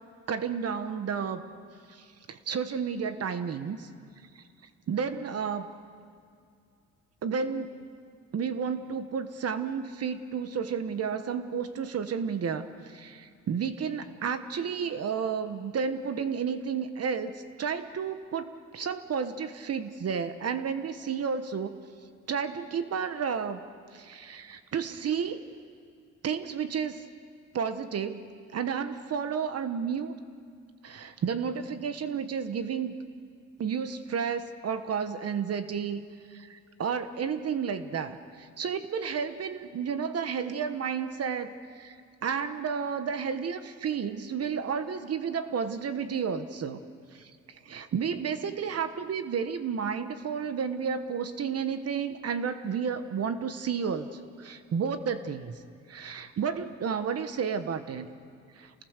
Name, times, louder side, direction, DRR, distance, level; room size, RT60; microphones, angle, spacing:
voice 1, 0.3-1.4 1.9-3.9 4.3-4.4 4.9-5.7 7.2-7.7 8.3-17.3 17.6-21.8 22.3-23.6 23.9-25.4 26.2-27.0 27.5-28.2 28.5-30.2 30.8-32.9 33.6-36.0 36.3-42.0 42.2-46.8 47.1-55.6 55.9-58.1 58.6-58.7, right 6 dB, 55° right, 10 dB, 1.3 m, -32 dB
28.0 x 20.0 x 6.7 m, 2.3 s
cardioid pair, 90°, 30 cm